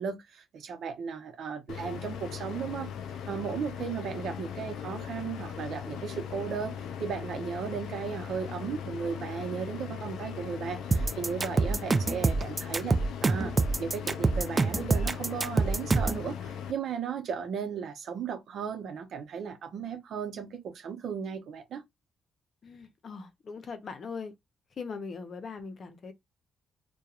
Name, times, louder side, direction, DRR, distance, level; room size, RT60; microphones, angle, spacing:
voice 1, 0.0-2.9 3.3-6.7 7.0-13.5 13.8-21.8, right 6 dB, 65° right, 0.7 m, -35 dB
sound 1, 1.7-16.7, left 8 dB, 80° left, 0.4 m, -39 dB
sound 2, 10.9-16.2, right 3 dB, 30° right, 0.4 m, -26 dB
voice 2, 22.6-24.3 24.8-26.1, left 5 dB, 50° left, 0.7 m, -40 dB
2.8 x 2.2 x 2.4 m
cardioid pair, 90°, 0 cm